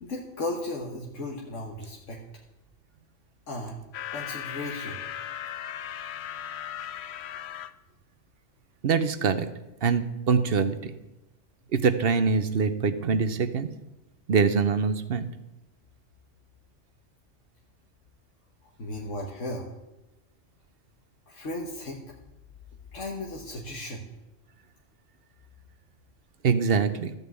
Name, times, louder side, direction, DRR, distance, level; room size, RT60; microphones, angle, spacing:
voice 1, 0.0-2.2 3.5-3.8 4.1-5.1 18.8-19.7 21.3-22.0 22.9-24.0, left 1 dB, 80° left, -1 dB, 1.7 m, -35 dB
sound 1, 3.9-7.7, left 10 dB, 65° left, 0.8 m, -37 dB
voice 2, 8.8-9.5 9.8-10.9 11.7-13.7 14.3-15.3 26.4-27.1, right 5 dB, 55° right, 11 dB, 0.9 m, -24 dB
13.5 x 5.4 x 8.2 m, 0.97 s
omnidirectional pair, 1.3 m